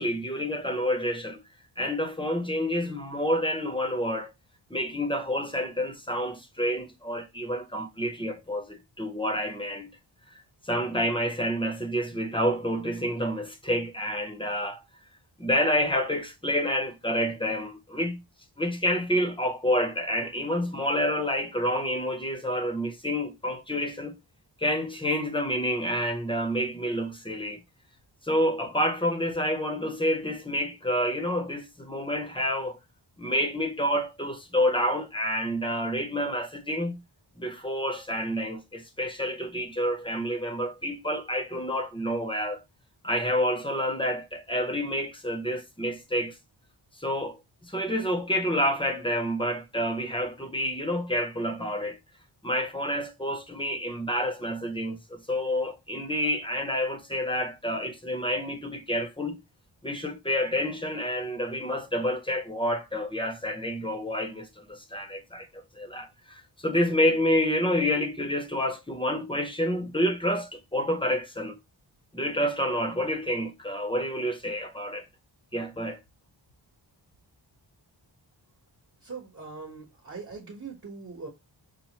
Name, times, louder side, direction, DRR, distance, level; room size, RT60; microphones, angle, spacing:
voice 1, 0.0-1.4 1.8-4.3 4.7-9.9 10.6-14.8 15.4-18.2 18.6-24.2 24.6-27.6 28.2-32.8 33.2-37.0 37.4-42.6 43.0-46.4 47.0-47.4 47.6-52.0 52.4-59.4 59.8-71.6 72.1-75.0 75.5-76.0, equal, 10° left, 0.8 m, -28 dB
voice 2, 79.0-81.3, right 4 dB, 35° right, 1.2 m, -41 dB
5.6 x 2.1 x 2.9 m
wide cardioid pair, 125°, 47 cm